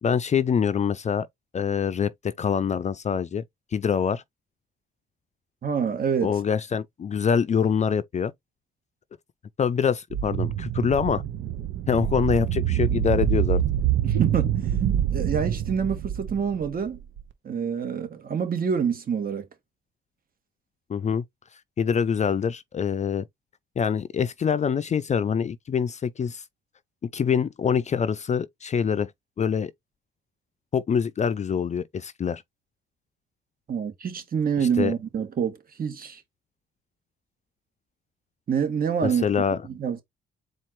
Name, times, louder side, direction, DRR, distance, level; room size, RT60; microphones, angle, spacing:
voice 1, 0.0-1.3 1.5-3.4 3.7-4.2 6.2-8.3 9.6-11.2 11.9-13.6 20.9-21.2 21.8-23.2 23.8-26.4 27.0-29.1 29.4-29.7 30.7-32.4 34.8-34.9 39.0-39.6, left 7 dB, 35° left, 0.4 m, -25 dB
voice 2, 5.6-6.3 14.0-14.6 15.1-17.0 17.4-19.5 33.7-36.2 38.5-39.2 39.8-40.0, right 7 dB, 45° right, 1.5 m, -26 dB
sound 1, 10.1-17.2, right 10 dB, 75° right, 0.7 m, -26 dB
4.3 x 2.5 x 4.4 m
cardioid pair, 90°, 20 cm